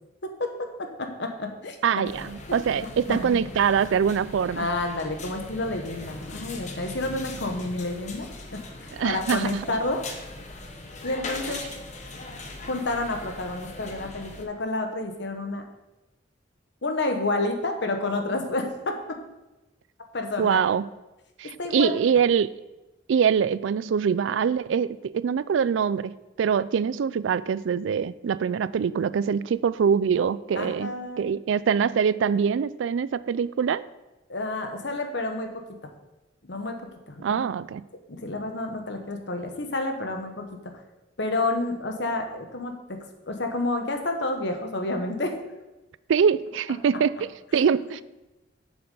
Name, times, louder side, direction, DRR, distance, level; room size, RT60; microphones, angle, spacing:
voice 1, 0.2-2.1 2.5-3.4 4.6-10.0 11.0-11.6 12.7-15.6 16.8-19.2 20.1-20.6 21.4-22.1 30.6-31.3 34.3-35.6 36.4-37.4 38.1-40.7 41.2-45.3, left 2 dB, 65° left, 4 dB, 1.2 m, -30 dB
voice 2, 1.8-4.7 9.0-9.6 11.5-11.6 20.4-20.8 21.4-22.5 23.1-30.9 31.2-33.8 37.2-37.8 46.1-48.0, right 7 dB, 80° right, 17 dB, 0.3 m, -24 dB
sound 1, 2.0-14.4, left 2 dB, 40° left, 1.0 m, -40 dB
7.5 x 6.9 x 5.4 m, 1.0 s
head